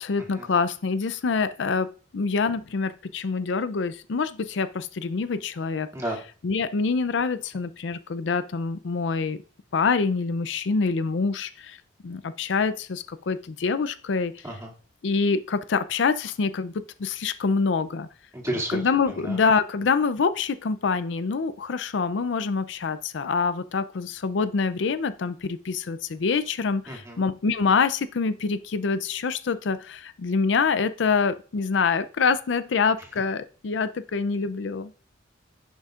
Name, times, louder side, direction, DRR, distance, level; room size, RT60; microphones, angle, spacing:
voice 1, 0.0-5.9 6.4-9.4 9.7-11.8 12.0-14.6 15.0-18.1 18.7-34.9, left 5 dB, 70° left, 13 dB, 0.5 m, -26 dB
voice 2, 18.3-18.8 19.2-19.4 26.9-27.2, right 1 dB, 15° right, -2 dB, 2.3 m, -31 dB
11.0 x 6.2 x 2.4 m, 0.38 s
head